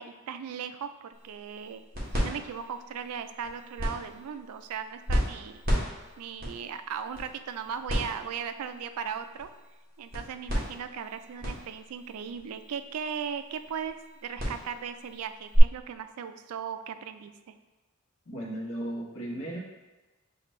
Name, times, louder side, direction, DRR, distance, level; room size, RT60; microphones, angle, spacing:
voice 1, 0.0-1.9 2.1-5.6 6.2-9.5 10.0-14.0 14.2-17.5, right 7 dB, 90° right, 10 dB, 0.3 m, -37 dB
sound 1, 1.1-15.6, equal, 40° right, 1.3 m, -34 dB
voice 2, 18.3-19.6, right 1 dB, 75° left, -3 dB, 1.1 m, -35 dB
6.6 x 2.5 x 3.1 m, 1.2 s
head